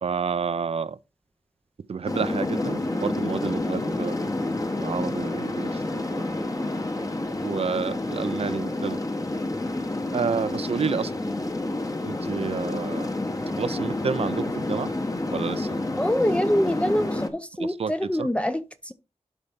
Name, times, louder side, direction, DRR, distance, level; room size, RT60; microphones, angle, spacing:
voice 1, 0.0-1.0 1.9-4.2 4.7-6.6 7.4-9.0 10.1-11.1 12.0-13.1 13.6-14.9 15.3-15.8 17.6-18.3, right 5 dB, 60° right, 0.5 m, -30 dB
sound 1, 2.0-17.3, left 2 dB, 30° left, 1.1 m, -29 dB
voice 2, 16.0-18.9, equal, 10° left, 0.5 m, -25 dB
12.0 x 4.0 x 3.6 m
wide cardioid pair, 80°, 12 cm